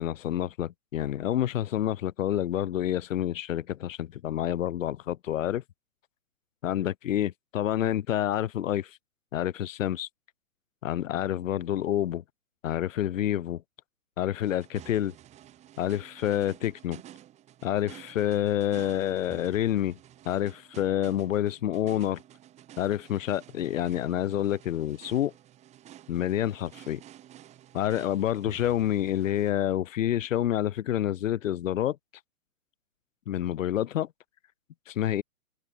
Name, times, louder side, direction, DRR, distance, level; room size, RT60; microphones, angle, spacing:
voice 1, 0.0-5.6 6.6-8.9 9.3-10.1 10.8-12.2 12.6-13.6 14.2-15.1 15.8-17.0 17.6-20.0 20.3-22.2 22.8-25.3 26.1-27.0 27.7-32.0 33.3-34.1 34.9-35.2, left 11 dB, 65° left, 0.8 m, -28 dB
sound 1, 14.4-29.5, right 12 dB, 15° right, 7.9 m, -51 dB
hypercardioid pair, 165°, 42 cm